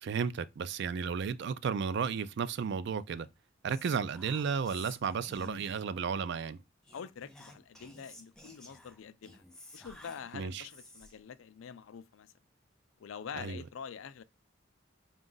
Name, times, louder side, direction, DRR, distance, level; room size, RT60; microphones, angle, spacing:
voice 1, 0.0-3.3 3.6-6.6 10.3-10.6 13.4-13.6, right 6 dB, 60° right, 0.3 m, -33 dB
Whispering, 3.7-6.0 6.8-11.3, left 1 dB, 5° left, 0.6 m, -53 dB
voice 2, 6.9-9.4 9.7-12.3 13.0-14.2, left 7 dB, 85° left, 0.4 m, -45 dB
5.1 x 2.4 x 3.8 m
head